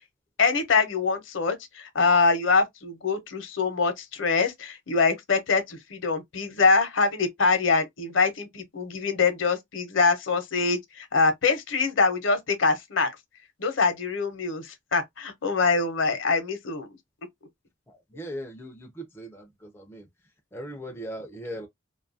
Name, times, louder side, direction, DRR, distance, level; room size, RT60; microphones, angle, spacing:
voice 1, 0.4-13.1 13.6-16.9, left 4 dB, 70° left, 0.7 m, -24 dB
voice 2, 18.1-19.4 19.7-20.0 20.5-21.7, equal, 10° left, 0.3 m, -38 dB
2.6 x 2.3 x 2.5 m
head